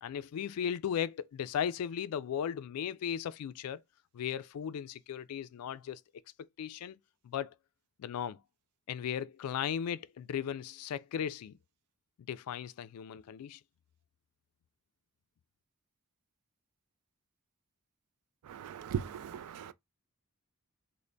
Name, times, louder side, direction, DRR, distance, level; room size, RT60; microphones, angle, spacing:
voice 1, 0.0-3.8 4.1-6.0 6.6-7.0 7.2-7.5 8.0-8.4 8.9-11.6 12.3-13.6, left 8 dB, 85° left, 0.3 m, -36 dB
voice 2, 18.4-19.7, right 8 dB, 90° right, 0.3 m, -38 dB
3.2 x 2.1 x 3.8 m
head